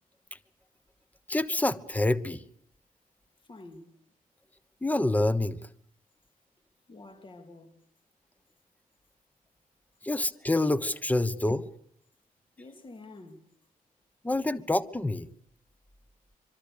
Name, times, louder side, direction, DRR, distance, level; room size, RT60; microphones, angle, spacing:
voice 1, 1.3-2.4 4.8-5.6 10.0-11.7 14.2-15.3, left 2 dB, 10° left, 1.2 m, -27 dB
voice 2, 3.5-3.9 6.9-7.7 12.6-13.5, left 2 dB, 35° left, 3.2 m, -48 dB
25.5 x 24.5 x 6.9 m
wide cardioid pair, 135°, 15 cm